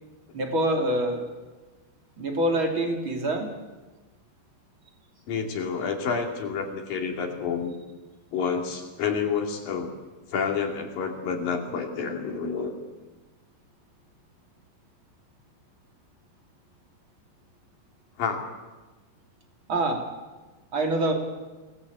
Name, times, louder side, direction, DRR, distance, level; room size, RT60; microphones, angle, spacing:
voice 1, 0.3-1.3 2.2-3.5 19.7-20.1 20.7-21.1, right 1 dB, 30° right, 3 dB, 3.1 m, -25 dB
voice 2, 5.3-7.7 8.3-9.9 10.3-12.8 18.2-18.5, left 6 dB, 55° left, 3 dB, 4.2 m, -29 dB
25.5 x 19.5 x 8.5 m, 1.2 s
omnidirectional pair, 5.0 m